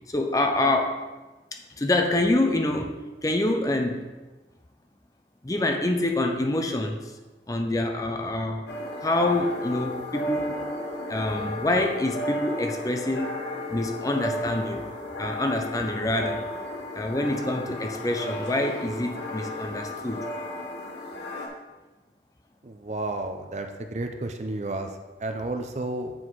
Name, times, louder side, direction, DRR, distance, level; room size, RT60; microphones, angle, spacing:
voice 1, 0.1-1.1 1.5-4.1 5.4-7.1 7.5-8.7 9.0-10.8 11.1-13.4 13.7-14.9 15.2-16.4 17.0-20.3, left 1 dB, 20° left, 4 dB, 0.5 m, -26 dB
sound 1, 8.7-21.5, left 1 dB, 80° left, 1.1 m, -34 dB
voice 2, 22.6-26.1, right 2 dB, 40° right, 5 dB, 0.5 m, -32 dB
7.6 x 4.2 x 4.6 m, 1.2 s
head